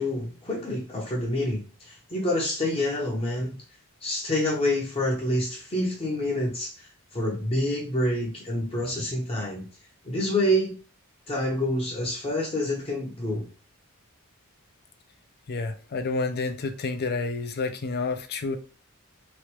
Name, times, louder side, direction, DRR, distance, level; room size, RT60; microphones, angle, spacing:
voice 1, 0.0-3.5 4.0-6.9 7.1-9.7 10.0-10.7 11.3-13.5, left 1 dB, 25° left, 0.8 m, -27 dB
voice 2, 15.5-18.6, left 3 dB, 45° left, 0.4 m, -29 dB
3.0 x 2.5 x 3.0 m
head